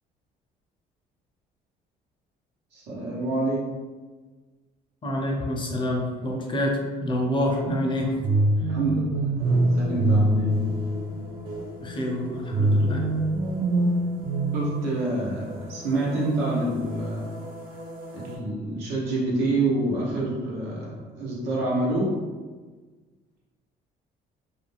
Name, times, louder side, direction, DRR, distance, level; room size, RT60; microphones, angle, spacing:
voice 1, 2.7-3.7 8.7-10.6 14.5-17.3 18.1-22.2, right 2 dB, 85° right, -5 dB, 1.0 m, -27 dB
voice 2, 5.0-8.1 11.8-13.1, left 1 dB, 30° left, 0 dB, 0.5 m, -27 dB
sound 1, 8.2-11.4 12.5-15.4, right 1 dB, 45° right, 0.4 m, -24 dB
sound 2, 9.4-18.4, equal, 60° right, 1.1 m, -39 dB
2.4 x 2.1 x 3.3 m, 1.4 s
cardioid pair, 110°, 17 cm